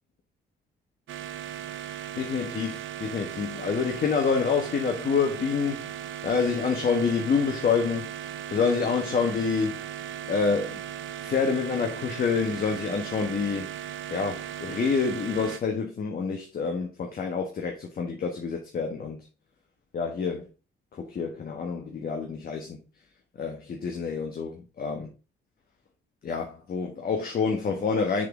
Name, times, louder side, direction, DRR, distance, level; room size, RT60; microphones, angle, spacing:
sound 1, 1.1-15.6, right 10 dB, 75° right, 0.7 m, -37 dB
voice 1, 2.2-5.8 6.2-8.1 8.5-9.8 10.3-10.8 11.2-13.7 14.1-19.2 19.9-20.5 20.9-22.8 23.4-25.1 26.2-28.3, left 5 dB, 50° left, 1.2 m, -27 dB
6.4 x 4.0 x 3.7 m
cardioid pair, 90°, 20 cm